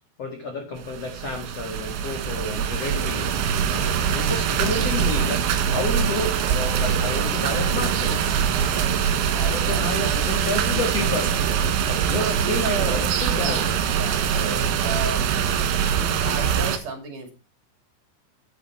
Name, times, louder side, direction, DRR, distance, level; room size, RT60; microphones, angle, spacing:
voice 1, 0.2-3.3 3.7-8.2 9.4-11.3 11.8-13.6, left 2 dB, 75° left, 4 dB, 1.4 m, -30 dB
sound 1, 0.8-16.8, right 8 dB, 70° right, 3.8 m, -23 dB
voice 2, 8.5-10.3 12.0-15.4 15.9-17.3, right 4 dB, 45° right, 3 dB, 3.8 m, -34 dB
11.0 x 9.6 x 4.6 m, 0.32 s
omnidirectional pair, 5.9 m